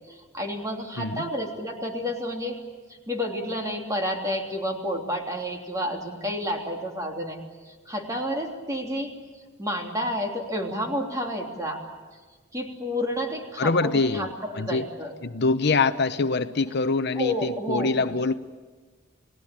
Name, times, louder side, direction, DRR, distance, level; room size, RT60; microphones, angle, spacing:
voice 1, 0.1-2.6 3.1-7.4 7.7-9.1 9.6-11.8 12.5-15.1 17.1-18.0, equal, 15° right, 1 dB, 3.3 m, -30 dB
voice 2, 13.6-14.3 14.5-14.9 15.2-18.3, left 3 dB, 60° left, 11 dB, 0.8 m, -24 dB
29.5 x 18.5 x 8.8 m, 1.4 s
head